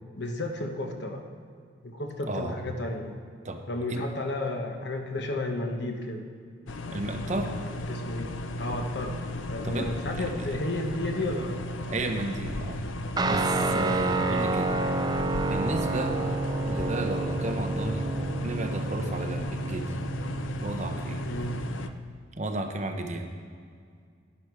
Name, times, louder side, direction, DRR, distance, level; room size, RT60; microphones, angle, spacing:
voice 1, 0.2-1.2 1.8-3.2 3.7-6.3 7.9-8.3 8.6-9.2 9.5-11.5 13.5-13.8 21.2-21.6, left 2 dB, 60° left, 4 dB, 1.0 m, -32 dB
voice 2, 2.2-2.6 3.4-3.6 3.9-4.0 6.9-7.5 9.6-9.9 10.2-10.3 11.9-12.8 13.3-14.8 15.5-16.2 16.6-18.1 18.4-19.8 20.6-21.2 22.4-23.3, right 2 dB, 35° right, 4 dB, 0.8 m, -33 dB
sound 1, 6.7-21.9, left 1 dB, 80° left, 0.6 m, -35 dB
Guitar, 13.2-22.0, right 2 dB, 20° right, 0.4 m, -29 dB
11.0 x 10.0 x 4.7 m, 2.2 s
head